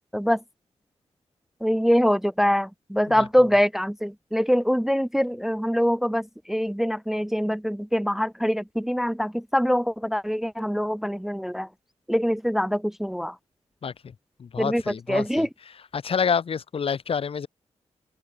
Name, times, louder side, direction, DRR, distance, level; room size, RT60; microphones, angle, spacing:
voice 1, 1.6-11.7 12.1-13.3 14.6-15.5, equal, 5° right, 0.4 m, -24 dB
voice 2, 14.4-15.5 15.9-17.5, left 6 dB, 55° left, 0.8 m, -27 dB
open air
cardioid pair, 85°, 11 cm